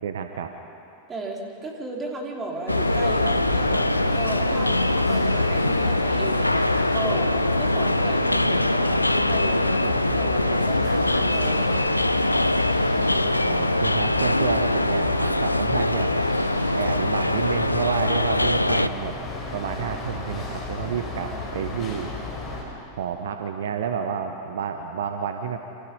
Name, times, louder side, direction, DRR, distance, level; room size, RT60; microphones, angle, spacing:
voice 1, 0.0-0.5 13.4-16.1 16.8-19.2 19.5-22.1 23.0-25.6, right 7 dB, 60° right, 6 dB, 1.3 m, -30 dB
voice 2, 1.1-12.2 21.2-21.4, right 2 dB, 20° right, -1 dB, 4.5 m, -35 dB
sound 1, 2.7-18.9, left 1 dB, 85° left, 0.5 m, -22 dB
sound 2, 2.7-22.6, left 3 dB, 30° left, 7.0 m, -34 dB
28.5 x 26.5 x 5.6 m, 2.7 s
figure-of-eight pair, 90°, 0 cm